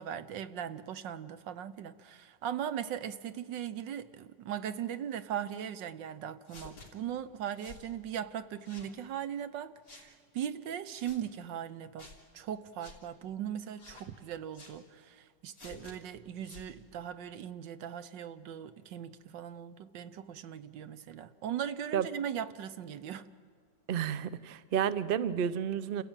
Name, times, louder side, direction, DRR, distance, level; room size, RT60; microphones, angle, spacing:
voice 1, 0.0-12.1 12.3-23.3, right 9 dB, 75° right, 13 dB, 1.6 m, -39 dB
sound 1, 6.5-6.9 7.6-7.9 8.6-8.9 9.9-10.1 10.9-11.2 12.0-12.2 12.8-13.0 13.8-14.1 14.5-14.8 15.5-16.0 16.4-16.7, left 3 dB, 50° left, 3.7 m, -51 dB
voice 2, 23.9-26.0, right 8 dB, 60° right, 14 dB, 0.5 m, -31 dB
28.5 x 15.5 x 9.0 m, 2.2 s
omnidirectional pair, 2.0 m